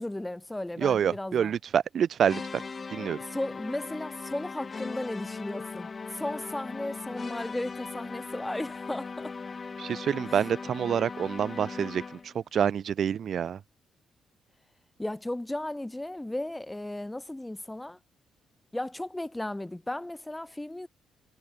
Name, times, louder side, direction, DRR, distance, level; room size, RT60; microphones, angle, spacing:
voice 1, 0.0-1.5 3.3-9.3 15.0-18.0 18.7-20.9, left 1 dB, 10° left, 1.6 m, -35 dB
voice 2, 0.8-2.6 2.9-3.2 9.8-13.6, right 8 dB, 60° right, 3.5 m, -27 dB
sound 1, 2.2-12.4, left 4 dB, 35° left, 2.5 m, -39 dB
cardioid pair, 90°, 0 cm